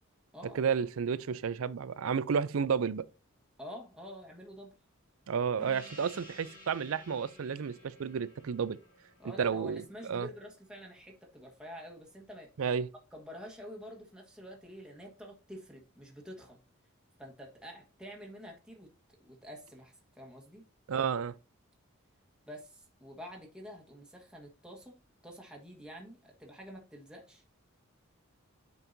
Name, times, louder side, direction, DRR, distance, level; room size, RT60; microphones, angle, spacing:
voice 1, 0.6-3.1 5.3-8.8 9.4-10.3 12.6-12.9 20.9-21.3, right 6 dB, 70° right, 0.4 m, -31 dB
voice 2, 3.6-4.8 9.2-12.5 13.1-16.6 17.2-18.9 19.2-20.7 22.5-27.4, equal, 5° right, 1.4 m, -48 dB
Gong, 5.6-10.6, left 1 dB, 40° left, 2.9 m, -54 dB
8.4 x 5.3 x 2.7 m
head